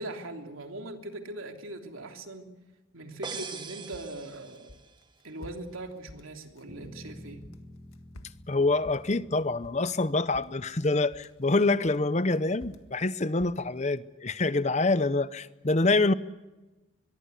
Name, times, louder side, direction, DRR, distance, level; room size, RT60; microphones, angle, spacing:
voice 1, 0.0-2.5 2.9-4.8 5.2-7.5, right 2 dB, 80° right, 3 dB, 3.2 m, -40 dB
sound 1, 3.2-5.0, right 5 dB, 20° right, 1.4 m, -41 dB
sound 2, 3.7-7.1 7.4-10.1 10.3-11.4 11.8-14.0, left 1 dB, 90° left, 1.8 m, -51 dB
sound 3, 6.7-11.0, equal, 35° right, 7.2 m, -50 dB
voice 2, 8.5-16.1, left 2 dB, 35° left, 14 dB, 0.7 m, -26 dB
23.5 x 22.5 x 8.3 m, 1.1 s
head